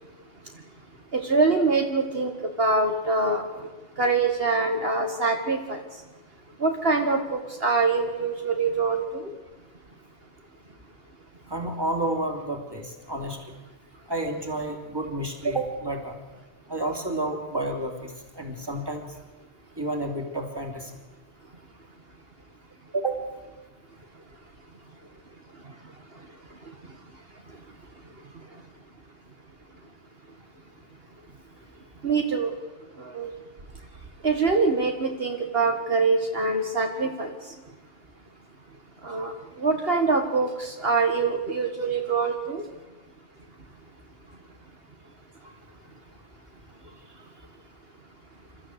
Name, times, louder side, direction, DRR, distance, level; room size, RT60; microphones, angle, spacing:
voice 1, 1.1-3.7 4.0-6.0 6.6-9.3 25.5-27.6 28.0-28.6 32.0-32.6 32.9-33.3 34.2-37.6 39.0-42.7, right 3 dB, 60° right, 3 dB, 2.1 m, -25 dB
voice 2, 11.5-13.4 14.1-16.2 16.7-19.1 19.8-20.9 22.9-23.2, right 2 dB, 20° right, 3 dB, 3.2 m, -30 dB
28.0 x 13.5 x 8.1 m, 1.2 s
omnidirectional pair, 1.1 m